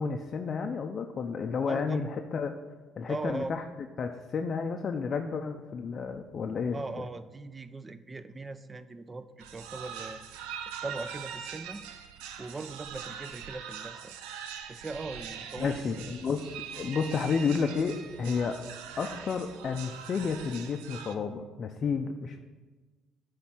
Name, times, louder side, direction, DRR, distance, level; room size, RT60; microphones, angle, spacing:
voice 1, 0.0-2.6 3.0-3.6 4.0-6.8 15.6-18.6 19.0-22.4, left 5 dB, 50° left, 4 dB, 0.5 m, -31 dB
voice 2, 1.7-2.0 3.1-3.5 6.7-10.2 10.8-11.8 12.4-14.1 14.7-15.9, right 3 dB, 25° right, 13 dB, 0.4 m, -39 dB
sound 1, 9.4-21.1, right 8 dB, 90° right, 0.4 m, -42 dB
8.1 x 3.2 x 5.9 m, 1.3 s
supercardioid pair, 75°, 0 cm